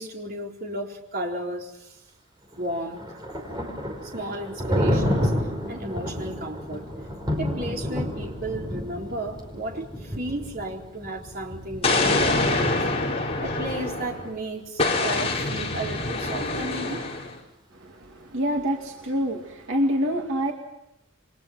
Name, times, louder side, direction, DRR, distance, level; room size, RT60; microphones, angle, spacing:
voice 1, 0.0-2.0 2.6-3.0 4.0-5.3 5.7-6.9 7.4-12.8 13.4-17.0, right 1 dB, 45° right, 0 dB, 4.2 m, -34 dB
Thunder, 2.5-14.3, equal, 20° right, 5.2 m, -30 dB
Explosion, 11.8-14.3 14.8-17.3, left 2 dB, 30° left, 4.7 m, -25 dB
voice 2, 17.7-20.5, equal, 70° right, 1 dB, 2.6 m, -26 dB
29.0 x 24.0 x 5.9 m, 0.85 s
head